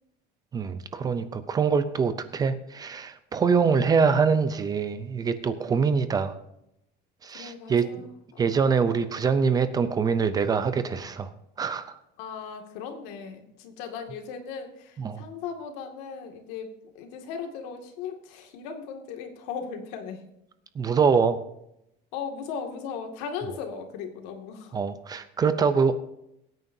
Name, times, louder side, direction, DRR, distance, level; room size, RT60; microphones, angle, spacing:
voice 1, 0.5-6.3 7.2-8.1 8.4-11.3 11.6-12.0 15.0-15.2 20.8-21.4 24.7-25.9, right 5 dB, 20° right, 12 dB, 0.5 m, -24 dB
voice 2, 7.3-8.5 12.2-20.2 22.1-24.8, left 6 dB, 80° left, 4 dB, 2.2 m, -37 dB
22.5 x 9.2 x 2.7 m, 0.80 s
cardioid pair, 180°, 21 cm